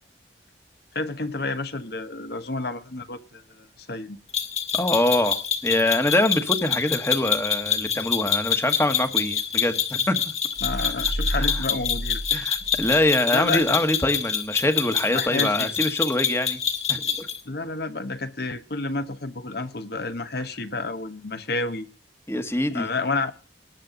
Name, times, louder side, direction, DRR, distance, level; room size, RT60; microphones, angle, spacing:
voice 1, 0.9-4.2 10.6-12.5 13.3-13.6 15.1-15.7 17.4-21.9 22.7-23.3, left 3 dB, 60° left, 1.3 m, -30 dB
sound 1, 4.3-17.4, left 7 dB, 40° left, 2.3 m, -26 dB
voice 2, 4.7-10.3 10.8-11.1 11.4-11.6 12.3-16.6 16.9-17.3 22.3-22.9, left 1 dB, 15° left, 1.4 m, -24 dB
sound 2, 10.6-13.1 13.5-13.6, right 1 dB, 90° right, 2.6 m, -31 dB
20.0 x 7.5 x 3.9 m
head